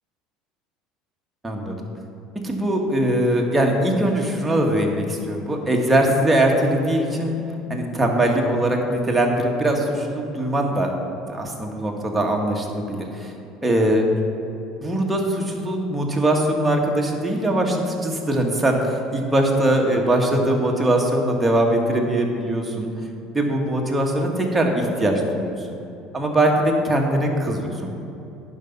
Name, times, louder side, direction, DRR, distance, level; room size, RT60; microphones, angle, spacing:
voice 1, 1.4-1.8 2.4-7.4 7.7-10.9 11.3-13.3 13.6-14.1 14.8-22.9 23.3-25.7 26.1-27.9, right 1 dB, 10° right, 0 dB, 1.5 m, -21 dB
10.0 x 5.4 x 5.8 m, 2.9 s
supercardioid pair, 105°, 0 cm